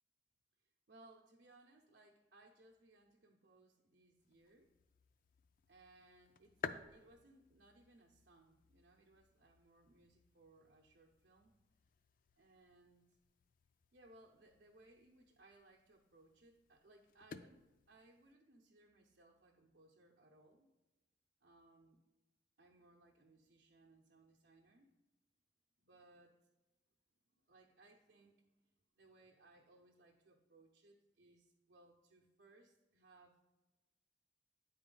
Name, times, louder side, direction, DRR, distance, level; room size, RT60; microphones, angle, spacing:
voice 1, 0.9-4.7 5.7-11.5 12.4-13.0 13.9-17.6 17.9-20.7 21.4-22.0 22.6-24.9 25.8-26.3 27.5-28.5 29.0-33.5, right 2 dB, 75° right, 0 dB, 0.7 m, -66 dB
sound 1, 4.2-18.3, left 6 dB, 50° left, 0.3 m, -55 dB
9.5 x 4.2 x 3.8 m, 1.1 s
head